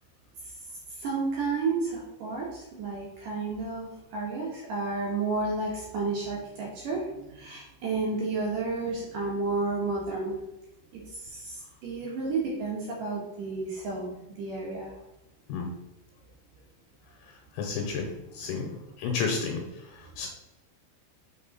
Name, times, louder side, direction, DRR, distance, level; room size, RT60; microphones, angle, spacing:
voice 1, 0.9-10.4 10.9-14.9 18.4-18.6, right 3 dB, 80° right, -3 dB, 1.9 m, -32 dB
voice 2, 17.6-18.1 18.3-18.7 19.0-19.6 20.2-20.3, left 5 dB, 75° left, 2 dB, 3.0 m, -30 dB
6.3 x 6.0 x 4.1 m, 0.96 s
omnidirectional pair, 5.8 m